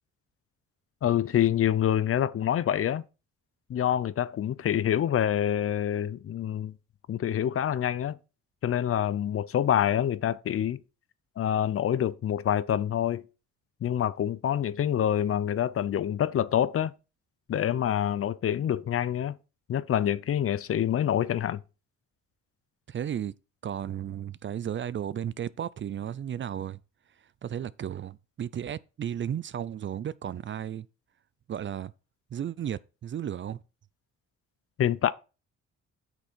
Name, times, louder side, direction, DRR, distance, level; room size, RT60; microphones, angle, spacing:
voice 1, 1.0-3.0 3.7-6.7 7.1-8.2 8.6-10.8 11.4-13.2 13.8-16.9 17.5-19.4 19.7-21.6 34.8-35.1, left 10 dB, 50° left, 0.6 m, -26 dB
voice 2, 22.9-23.3 23.6-26.8 27.4-30.9 31.5-31.9 32.3-33.6, right 9 dB, 40° right, 0.5 m, -34 dB
8.2 x 6.2 x 4.5 m
cardioid pair, 90°, 30 cm